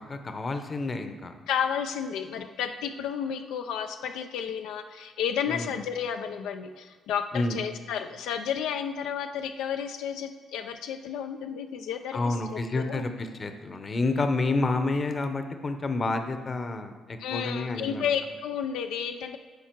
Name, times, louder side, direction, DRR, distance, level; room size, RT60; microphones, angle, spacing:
voice 1, 0.0-1.3 5.5-5.7 7.3-7.6 12.1-18.1, left 3 dB, 35° left, 7 dB, 0.8 m, -29 dB
voice 2, 1.5-13.1 17.2-19.4, left 8 dB, 90° left, 7 dB, 0.4 m, -32 dB
11.5 x 4.6 x 4.6 m, 1.5 s
cardioid pair, 90°, 0 cm